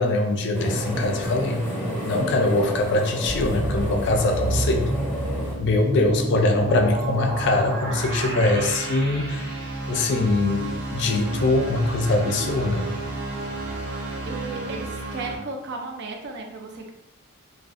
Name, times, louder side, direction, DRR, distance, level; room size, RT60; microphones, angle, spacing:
voice 1, 0.0-1.6 2.0-5.0 5.6-9.6 9.9-12.9, left 2 dB, 50° left, 4 dB, 0.3 m, -22 dB
sound 1, 0.5-5.5, equal, 10° left, 0.7 m, -30 dB
sound 2, 3.3-15.4, right 2 dB, 80° right, 0.6 m, -30 dB
voice 2, 14.0-16.9, right 3 dB, 50° right, 3 dB, 0.3 m, -35 dB
2.4 x 2.2 x 2.4 m, 0.85 s
head